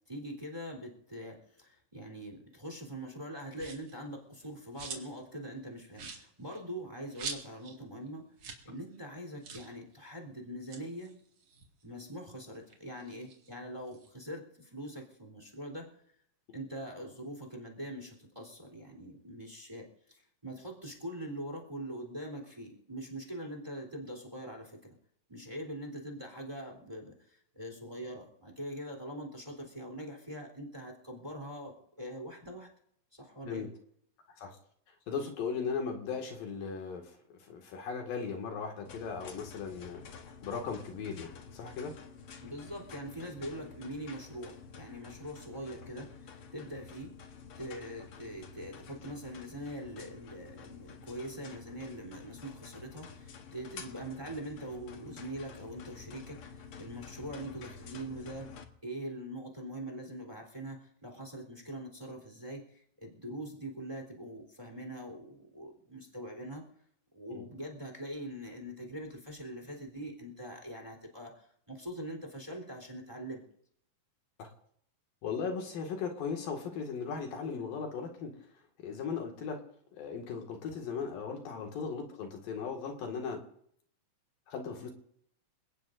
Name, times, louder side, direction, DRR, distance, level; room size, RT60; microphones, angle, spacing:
voice 1, 0.1-8.3 8.6-11.1 11.8-15.9 16.5-24.8 25.3-32.7 33.1-33.7 42.4-47.1 47.6-58.5 58.8-66.6 67.1-73.4, right 1 dB, 10° right, 3 dB, 3.4 m, -43 dB
sound 1, 3.5-4.0 4.4-5.2 5.5-5.6 5.9-7.8 8.1-8.2 8.4-8.7 8.9-9.0 9.4-9.7 10.5-12.2 12.6-14.1, right 5 dB, 50° right, 2.9 m, -45 dB
voice 2, 35.1-41.9 67.3-67.4 74.4-74.5 75.2-78.4 78.8-79.6 80.0-83.4 84.5-84.9, left 5 dB, 75° left, 2 dB, 3.8 m, -37 dB
sound 2, 38.8-58.6, left 5 dB, 55° left, 1.7 m, -50 dB
27.5 x 18.0 x 2.7 m, 0.69 s
omnidirectional pair, 4.1 m